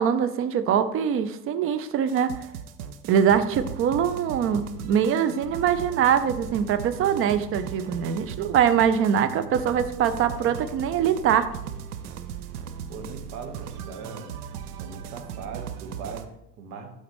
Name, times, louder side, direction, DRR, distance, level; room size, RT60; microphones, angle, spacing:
voice 1, 0.0-2.4 3.1-11.5, right 8 dB, 30° right, 12 dB, 0.5 m, -23 dB
sound 1, 2.1-16.3, right 8 dB, 70° right, 0.7 m, -38 dB
voice 2, 12.9-14.3 14.8-16.9, right 5 dB, 50° right, 4 dB, 1.5 m, -39 dB
12.5 x 4.4 x 3.1 m, 0.83 s
figure-of-eight pair, 70°, 48 cm